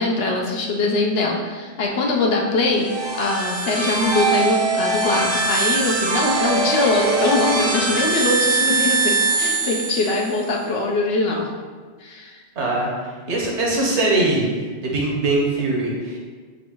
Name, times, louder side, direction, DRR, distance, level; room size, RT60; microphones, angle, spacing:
voice 1, 0.0-2.9 3.2-11.5 12.0-12.4, left 3 dB, 65° left, 0 dB, 0.8 m, -22 dB
sound 1, 2.7-10.4, right 3 dB, 35° right, 0.5 m, -22 dB
voice 2, 12.6-14.5 14.8-16.2, right 2 dB, 70° right, -3 dB, 1.2 m, -21 dB
5.5 x 2.6 x 2.9 m, 1.5 s
omnidirectional pair, 1.2 m